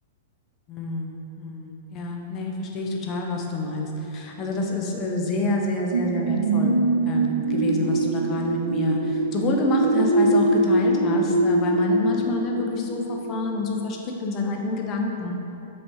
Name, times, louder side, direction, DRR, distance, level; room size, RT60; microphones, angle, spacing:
voice 1, 0.7-6.8 7.0-15.3, left 2 dB, 30° left, 1 dB, 0.5 m, -28 dB
sound 1, 5.9-13.3 13.8-13.9, right 2 dB, 70° right, 0.4 m, -23 dB
5.1 x 3.3 x 2.9 m, 3.0 s
figure-of-eight pair, 105°, 0 cm